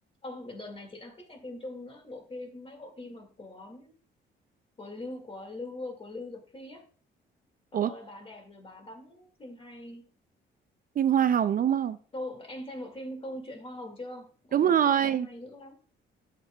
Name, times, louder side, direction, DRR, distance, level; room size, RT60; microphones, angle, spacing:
voice 1, 0.2-4.0 4.8-6.9 7.7-10.1 12.1-15.7, left 1 dB, 30° left, 2.0 m, -42 dB
voice 2, 11.0-12.0 14.5-15.3, right 9 dB, 45° right, 0.4 m, -24 dB
11.5 x 7.4 x 2.2 m
cardioid pair, 90°, 20 cm